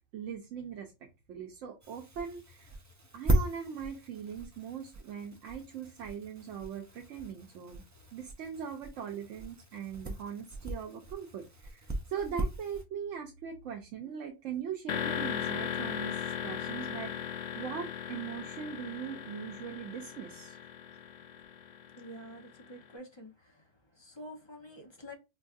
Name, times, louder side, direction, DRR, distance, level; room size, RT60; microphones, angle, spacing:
voice 1, 0.1-0.9 1.3-2.7 3.1-7.8 8.1-17.1 17.5-20.6, right 7 dB, 85° right, 1.0 m, -40 dB
sound 1, 1.8-12.8, right 1 dB, 25° right, 0.4 m, -37 dB
sound 2, 14.9-22.7, left 8 dB, 65° left, 0.4 m, -38 dB
voice 2, 21.9-23.6 24.0-25.1, equal, 25° left, 0.8 m, -48 dB
4.4 x 2.3 x 2.5 m
omnidirectional pair, 1.3 m